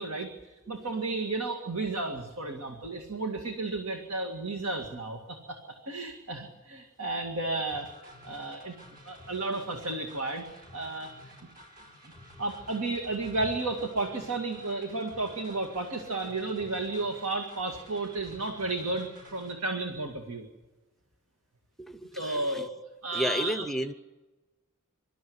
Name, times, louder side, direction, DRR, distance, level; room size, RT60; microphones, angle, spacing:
voice 1, 0.0-5.6 5.9-7.9 8.2-8.7 9.0-10.4 10.7-11.1 12.4-20.5 22.2-22.7 23.0-23.6, right 2 dB, 80° right, 4 dB, 2.1 m, -33 dB
sound 1, 7.7-19.5, equal, 40° right, 5.0 m, -52 dB
voice 2, 21.8-22.7 23.1-23.9, equal, ahead, 12 dB, 0.7 m, -32 dB
25.0 x 13.0 x 9.6 m, 1.2 s
head